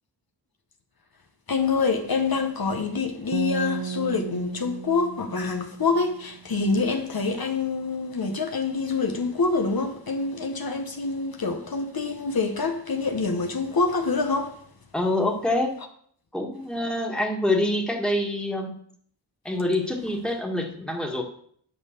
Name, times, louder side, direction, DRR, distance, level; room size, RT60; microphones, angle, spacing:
voice 1, 1.5-14.6, left 4 dB, 60° left, 1.0 m, -26 dB
sound 1, 3.3-6.5, right 8 dB, 50° right, 0.5 m, -34 dB
voice 2, 14.9-15.7 16.3-18.8 19.4-21.2, left 1 dB, ahead, 1.7 m, -26 dB
9.1 x 5.4 x 6.7 m
wide cardioid pair, 70°, 40 cm